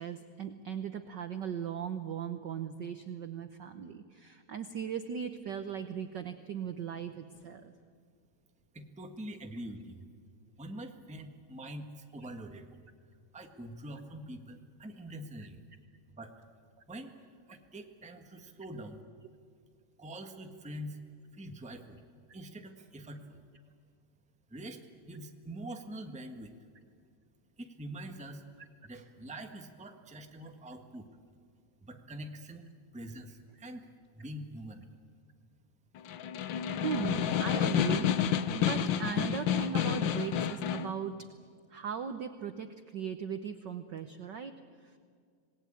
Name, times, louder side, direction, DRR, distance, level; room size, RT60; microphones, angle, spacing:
voice 1, 0.0-7.7 36.8-38.1 38.5-41.3 41.7-44.6 44.8-44.9, right 7 dB, 75° right, 9 dB, 1.0 m, -38 dB
voice 2, 8.7-10.0 10.6-12.7 13.3-15.6 16.1-16.3 16.9-17.2 17.5-19.0 20.0-21.0 21.3-22.0 22.3-23.4 24.5-26.5 27.6-28.4 28.8-31.1 31.8-32.7 32.9-33.9 34.1-34.8, right 1 dB, 5° right, 4 dB, 0.9 m, -44 dB
Snare drum, 36.0-41.0, left 9 dB, 90° left, 1.0 m, -30 dB
26.5 x 19.5 x 8.8 m, 2.2 s
omnidirectional pair, 3.3 m